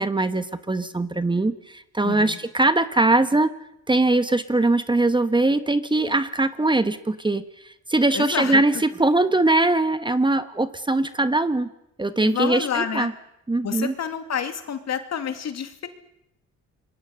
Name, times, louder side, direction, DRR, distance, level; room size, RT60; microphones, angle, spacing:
voice 1, 0.0-3.5 3.9-11.7 12.0-13.1 13.5-13.9, right 2 dB, 15° right, 11 dB, 1.3 m, -21 dB
voice 2, 2.0-2.4 8.1-8.8 12.2-13.1 13.6-15.9, left 8 dB, 60° left, 8 dB, 2.7 m, -29 dB
27.0 x 22.5 x 6.6 m, 0.82 s
cardioid pair, 90°, 30 cm